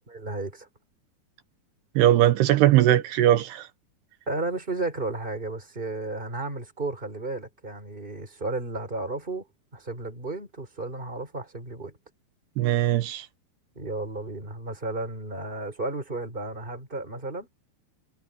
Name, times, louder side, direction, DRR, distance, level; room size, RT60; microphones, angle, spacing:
voice 1, 0.1-0.7 4.3-9.5 9.7-12.0 13.7-17.5, right 2 dB, 10° right, 4.9 m, -33 dB
voice 2, 2.0-3.7 12.6-13.3, right 13 dB, 75° right, 2.7 m, -20 dB
omnidirectional pair, 5.4 m